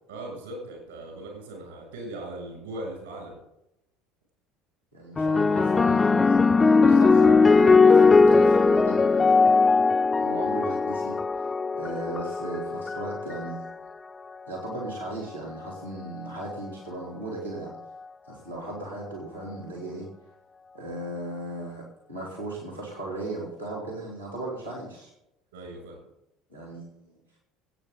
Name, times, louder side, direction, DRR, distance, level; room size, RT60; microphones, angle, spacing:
voice 1, 0.1-3.4 25.5-26.0, right 1 dB, 70° right, 0 dB, 6.9 m, -39 dB
voice 2, 4.9-9.4 10.2-11.2 11.7-13.8 14.5-17.7 18.3-20.1 20.7-21.8 22.1-25.1 26.5-27.2, right 2 dB, 90° right, -4 dB, 3.4 m, -36 dB
sound 1, 5.2-13.7 14.6-15.0, left 4 dB, 20° left, 0.5 m, -20 dB
22.5 x 9.2 x 4.0 m, 0.85 s
figure-of-eight pair, 65°, 0 cm